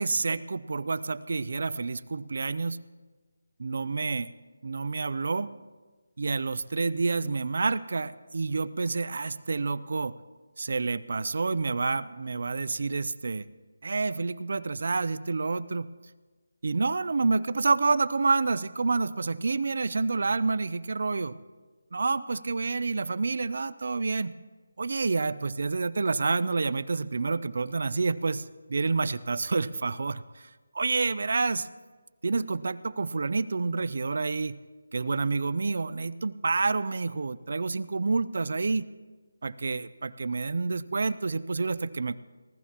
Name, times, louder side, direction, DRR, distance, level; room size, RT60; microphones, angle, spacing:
voice 1, 0.0-2.8 3.6-4.3 4.6-5.5 6.2-10.2 10.6-13.5 13.8-15.9 16.6-21.3 21.9-24.3 24.8-28.4 28.7-30.5 30.7-31.7 32.2-34.6 34.9-38.9 39.4-42.2, right 4 dB, 50° right, 16 dB, 0.4 m, -28 dB
19.5 x 13.5 x 2.9 m, 1.3 s
figure-of-eight pair, 175°, 0 cm